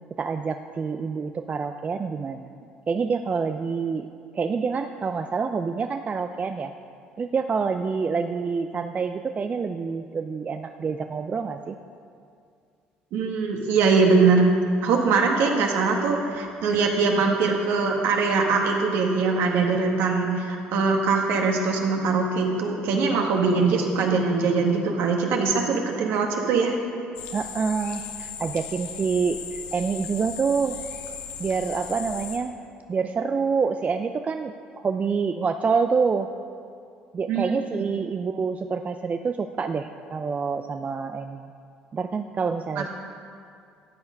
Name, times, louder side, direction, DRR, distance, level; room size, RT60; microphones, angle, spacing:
voice 1, 0.2-2.5 2.9-4.1 4.3-6.7 7.2-11.8 27.3-30.8 31.4-32.5 32.9-34.5 34.8-36.3 37.1-41.5 41.9-42.9, right 5 dB, 35° right, 7 dB, 0.5 m, -27 dB
voice 2, 13.1-14.5 14.8-26.7 37.3-37.5, right 4 dB, 70° right, 1 dB, 1.8 m, -22 dB
sound 1, 27.1-32.4, left 7 dB, 80° left, 1.1 m, -37 dB
13.0 x 8.7 x 5.3 m, 2.4 s
hypercardioid pair, 65°, 4 cm